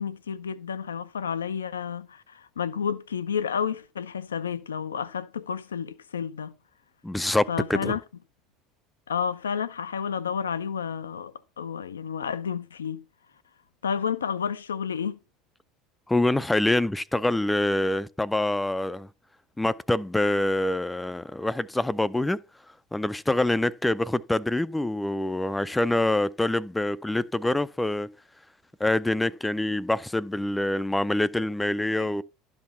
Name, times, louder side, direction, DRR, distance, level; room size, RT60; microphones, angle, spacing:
voice 1, 0.0-6.5 7.5-8.0 9.1-13.0 13.8-15.2 32.0-32.1, left 7 dB, 80° left, 0.4 m, -31 dB
voice 2, 7.0-8.0 16.1-19.1 19.6-22.4 22.9-28.1 28.8-32.2, left 1 dB, 10° left, 0.4 m, -25 dB
12.0 x 4.0 x 5.7 m
figure-of-eight pair, 70°, 0 cm